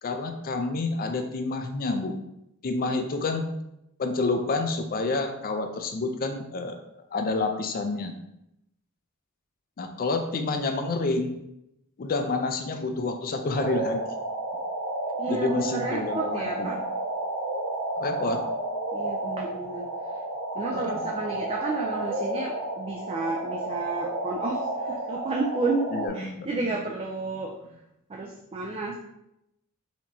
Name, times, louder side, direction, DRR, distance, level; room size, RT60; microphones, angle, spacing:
voice 1, 0.0-2.1 2.6-3.5 4.0-6.8 7.1-8.1 9.8-11.4 12.0-14.0 15.3-16.7 18.0-18.5 20.7-21.0 25.9-26.7, left 3 dB, 45° left, 6 dB, 0.4 m, -29 dB
sound 1, 13.5-26.1, right 2 dB, 80° right, 0.9 m, -31 dB
voice 2, 15.2-16.8 18.9-19.9 20.5-25.9 26.1-27.6 28.1-29.0, right 3 dB, 25° right, 0 dB, 0.3 m, -31 dB
4.2 x 3.0 x 2.7 m, 0.83 s
head